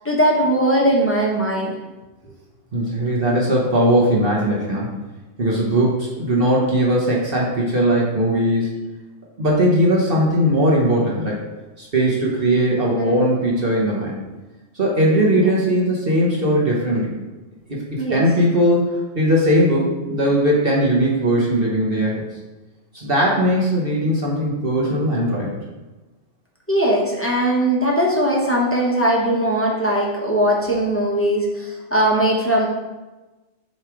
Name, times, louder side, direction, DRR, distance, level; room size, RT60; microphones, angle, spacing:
voice 1, 0.0-1.7 13.0-13.2 18.0-18.2 26.7-32.7, right 1 dB, 10° left, -3 dB, 0.9 m, -19 dB
voice 2, 2.7-5.0 5.4-8.7 9.4-11.4 11.8-14.2 14.7-17.1 17.7-22.2 22.9-25.6, equal, 50° right, -4 dB, 1.3 m, -19 dB
7.3 x 3.2 x 4.8 m, 1.1 s
omnidirectional pair, 1.3 m